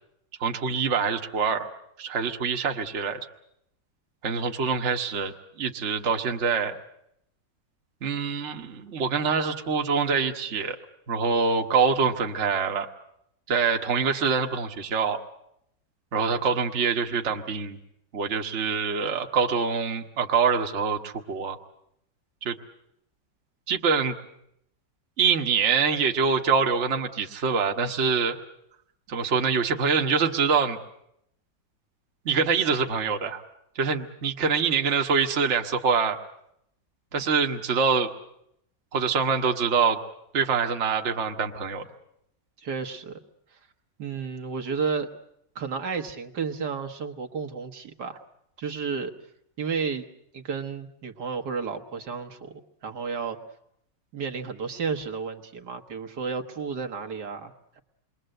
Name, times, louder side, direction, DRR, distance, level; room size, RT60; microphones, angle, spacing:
voice 1, 0.4-1.7 2.0-3.2 4.2-6.8 8.0-10.8 11.1-12.9 13.5-15.2 16.1-17.8 18.1-21.6 22.4-22.5 23.7-24.1 25.2-28.4 29.1-30.8 32.2-33.4 33.7-36.2 37.1-38.1 38.9-40.0 40.3-41.8, right 5 dB, 45° right, 3 dB, 1.5 m, -25 dB
voice 2, 42.6-43.2 43.5-43.6 44.0-45.1 45.6-48.2 48.6-49.1 49.6-50.1 50.3-53.4 54.1-57.8, right 5 dB, 65° right, 5 dB, 1.9 m, -32 dB
28.0 x 22.0 x 7.8 m, 0.74 s
omnidirectional pair, 1.9 m